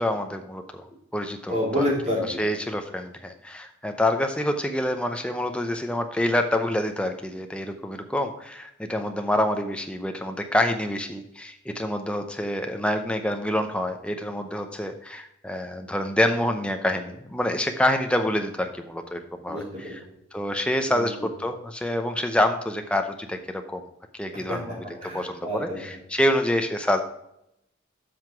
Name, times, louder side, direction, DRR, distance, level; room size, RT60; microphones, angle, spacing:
voice 1, 0.0-1.9 2.4-19.6 20.3-23.8 24.2-24.6 25.0-27.0, left 1 dB, 5° left, 6 dB, 0.6 m, -27 dB
voice 2, 1.5-2.4 19.4-19.9 20.9-21.3 24.3-25.8, left 1 dB, 35° right, -5 dB, 3.3 m, -29 dB
7.7 x 5.8 x 4.5 m, 0.80 s
head